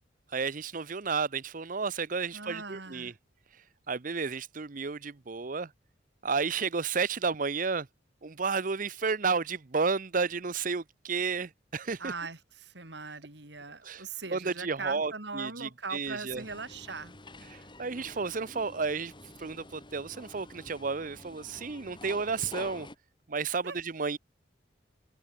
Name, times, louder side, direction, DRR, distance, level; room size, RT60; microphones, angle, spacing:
voice 1, 0.3-3.1 3.9-5.7 6.2-7.9 8.2-12.1 13.8-14.0 14.3-16.4 17.5-19.1 19.4-22.9 23.3-24.2, right 4 dB, 45° right, 0.7 m, -32 dB
voice 2, 2.3-3.1 12.0-17.1 23.6-23.8, right 4 dB, 65° right, 3.4 m, -40 dB
sound 1, 16.3-22.9, left 2 dB, 25° left, 6.6 m, -49 dB
head